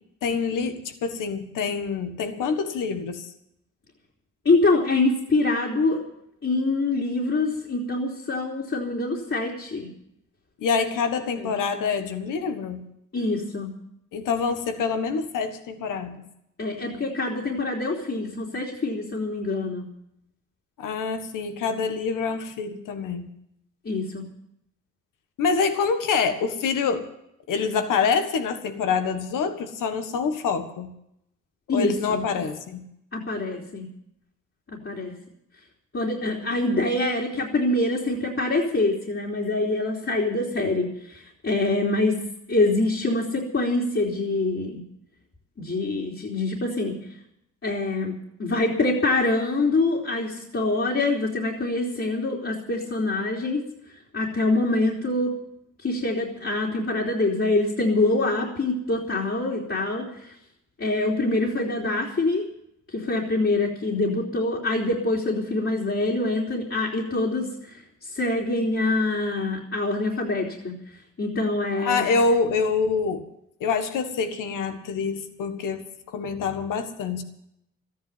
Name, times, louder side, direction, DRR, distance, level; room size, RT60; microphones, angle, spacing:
voice 1, 0.2-3.3 10.6-12.8 14.1-16.2 20.8-23.3 25.4-27.1 27.5-30.9 31.7-32.8 71.8-73.2 73.6-77.2, left 5 dB, 85° left, 8 dB, 1.6 m, -26 dB
voice 2, 4.5-6.0 6.4-9.9 11.4-11.5 13.1-13.7 16.6-19.9 23.9-24.3 31.7-32.2 33.1-33.9 34.8-35.1 35.9-42.2 42.5-44.8 45.6-47.0 47.6-53.6 54.1-55.3 55.8-60.3 60.8-62.5 62.9-70.7 71.2-72.1, left 2 dB, 45° left, -2 dB, 3.4 m, -25 dB
13.5 x 10.5 x 9.2 m, 0.77 s
supercardioid pair, 55°, 31 cm